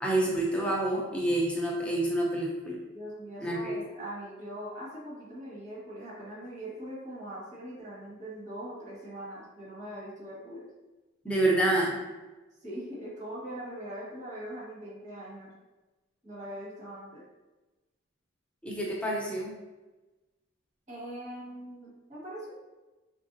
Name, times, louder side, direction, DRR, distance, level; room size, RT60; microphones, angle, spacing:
voice 1, 0.0-2.8 3.4-3.8 11.2-12.0 18.6-19.5, right 1 dB, 5° left, -3 dB, 0.6 m, -28 dB
voice 2, 2.9-10.7 12.6-15.5 16.2-17.2 20.9-22.5, right 1 dB, 35° right, -6 dB, 1.5 m, -41 dB
4.7 x 3.4 x 2.6 m, 1.1 s
head